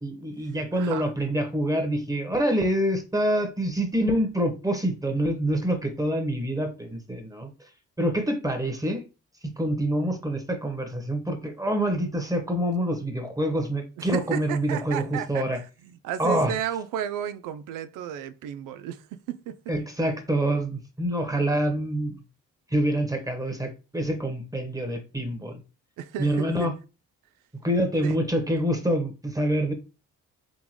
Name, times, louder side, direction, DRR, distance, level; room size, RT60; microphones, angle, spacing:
voice 1, 0.0-7.7 8.0-9.0 9.4-15.6 16.2-16.5 19.7-22.2 22.7-25.6 26.2-26.7 27.6-29.7, right 1 dB, 10° right, 1.2 m, -26 dB
voice 2, 0.7-1.1 14.0-19.7 26.0-26.7 28.0-28.2, right 9 dB, 85° right, 0.5 m, -33 dB
3.8 x 3.5 x 3.1 m
supercardioid pair, 65°, 31 cm